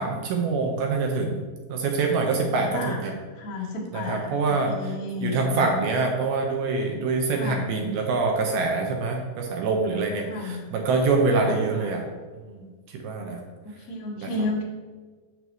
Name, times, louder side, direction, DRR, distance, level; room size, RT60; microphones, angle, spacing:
voice 1, 0.0-1.4 1.7-3.1 3.9-4.9 5.2-12.0 12.5-12.6 12.9-13.4 14.2-14.3, right 3 dB, 80° right, 2 dB, 2.4 m, -25 dB
voice 2, 3.4-5.4 7.3-7.7 10.3-10.7 11.4-11.9 13.6-14.6, left 2 dB, 75° left, -4 dB, 1.3 m, -32 dB
6.8 x 6.2 x 3.0 m, 1.4 s
omnidirectional pair, 4.8 m